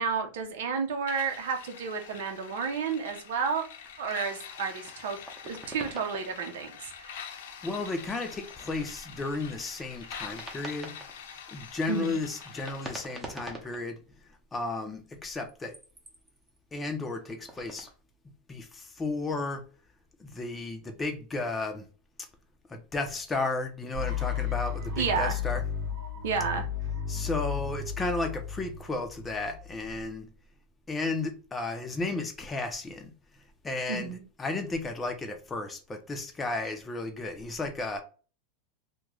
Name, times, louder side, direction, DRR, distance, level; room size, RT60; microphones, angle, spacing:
voice 1, 0.0-3.6 4.0-5.2 5.4-7.2 11.9-12.2 25.0-25.4 26.2-26.7 33.9-34.2, right 5 dB, 80° right, 0.7 m, -31 dB
sound 1, 1.1-13.1, left 7 dB, 75° left, 0.7 m, -45 dB
sound 2, 3.8-4.0 4.3-6.6 7.2-7.3 8.2-8.9 9.7-11.3 12.1-14.0 15.2-16.6 17.1-17.9, right 1 dB, 10° right, 0.8 m, -45 dB
voice 2, 7.6-10.9 11.5-14.0 14.5-15.7 16.7-17.9 18.5-19.6 20.2-21.8 22.7-25.6 27.1-30.3 30.9-33.1 33.6-38.0, left 3 dB, 15° left, 0.6 m, -33 dB
sound 3, 23.9-29.9, left 8 dB, 50° right, 1.2 m, -34 dB
2.9 x 2.2 x 3.6 m
supercardioid pair, 130°, 0 cm